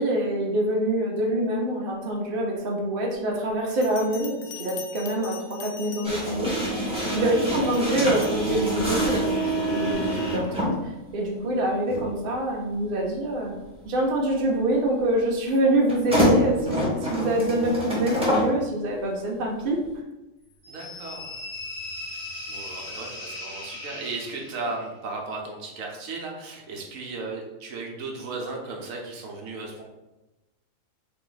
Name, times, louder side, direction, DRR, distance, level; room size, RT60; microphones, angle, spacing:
voice 1, 0.0-6.5 7.1-9.4 9.7-13.6 13.8-19.8, right 1 dB, 45° right, -1 dB, 0.9 m, -25 dB
Bell, 3.7-6.4 7.0-7.3 7.7-8.5, left 7 dB, 85° left, 0.4 m, -42 dB
sound 1, 6.0-10.8 11.9-12.0 15.9-18.5, equal, 5° right, 1.2 m, -26 dB
sound 2, 20.6-24.8, left 2 dB, 60° left, 1.1 m, -38 dB
voice 2, 20.7-21.5 22.1-29.8, right 3 dB, 80° right, 0 dB, 1.2 m, -36 dB
3.6 x 2.9 x 3.9 m, 1.0 s
omnidirectional pair, 1.4 m